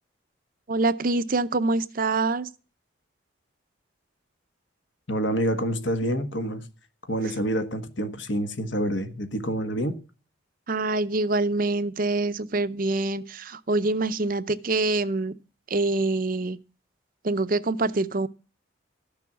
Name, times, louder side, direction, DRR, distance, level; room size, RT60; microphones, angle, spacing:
voice 1, 0.7-2.5 10.7-15.3 15.7-16.6 17.2-18.3, right 2 dB, 45° right, 0.7 m, -25 dB
voice 2, 5.1-6.7 7.1-10.0, equal, 65° left, 1.4 m, -27 dB
13.5 x 7.0 x 7.2 m
head